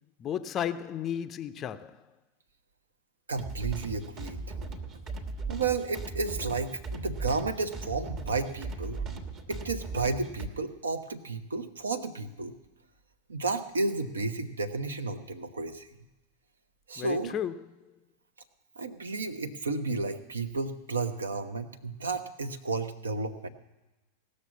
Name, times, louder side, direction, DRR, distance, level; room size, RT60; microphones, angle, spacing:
voice 1, 0.2-2.1 17.0-17.8, left 9 dB, 30° left, 0.4 m, -34 dB
voice 2, 3.3-4.4 5.5-9.0 9.5-12.5 13.3-15.9 16.9-17.3 18.8-23.5, right 3 dB, 70° right, 0.8 m, -32 dB
sound 1, 3.4-10.5, right 3 dB, 35° right, 1.2 m, -38 dB
17.5 x 6.6 x 7.2 m
figure-of-eight pair, 90°, 0 cm